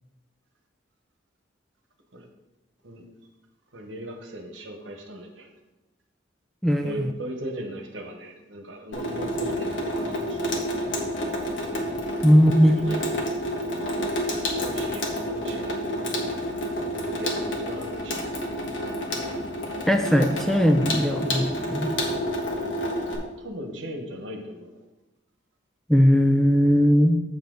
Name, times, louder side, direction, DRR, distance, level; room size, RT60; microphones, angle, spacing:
voice 1, 3.7-5.5 6.8-10.5 10.8-11.0 12.7-13.0 14.1-16.2 16.9-18.4 23.4-24.7, right 1 dB, 75° right, 3 dB, 1.2 m, -38 dB
voice 2, 6.6-7.0 12.2-12.8 19.9-21.9 25.9-27.2, equal, ahead, 5 dB, 0.4 m, -19 dB
Water tap faucet / Sink (filling or washing), 8.9-23.1, equal, 75° left, 1.3 m, -29 dB
7.4 x 6.9 x 3.9 m, 1.0 s
head